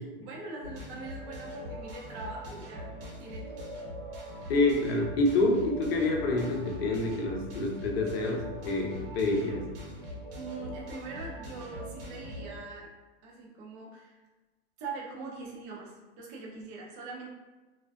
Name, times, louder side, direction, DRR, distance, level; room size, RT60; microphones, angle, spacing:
voice 1, 0.2-3.7 10.3-12.9 13.2-14.1 14.8-17.3, right 3 dB, 25° right, -2 dB, 0.4 m, -42 dB
sound 1, 0.6-12.5, equal, 60° right, 0.8 m, -42 dB
voice 2, 4.5-9.7, left 2 dB, 75° left, 0 dB, 0.6 m, -27 dB
2.4 x 2.3 x 2.2 m, 1.2 s
supercardioid pair, 150°, 30 cm